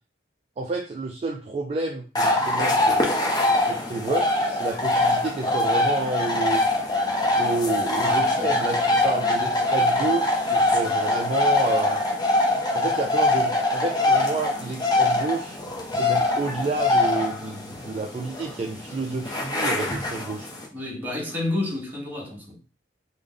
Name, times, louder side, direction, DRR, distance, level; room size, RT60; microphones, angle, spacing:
voice 1, 0.6-6.6 7.4-12.0 12.7-15.6 15.9-20.5, right 3 dB, 35° right, 0.3 m, -30 dB
sound 1, 2.2-20.7, left 2 dB, 20° left, 0.6 m, -23 dB
voice 2, 8.1-8.5 9.0-9.2 20.7-22.6, left 2 dB, 10° right, 1.0 m, -31 dB
3.3 x 2.1 x 3.7 m
head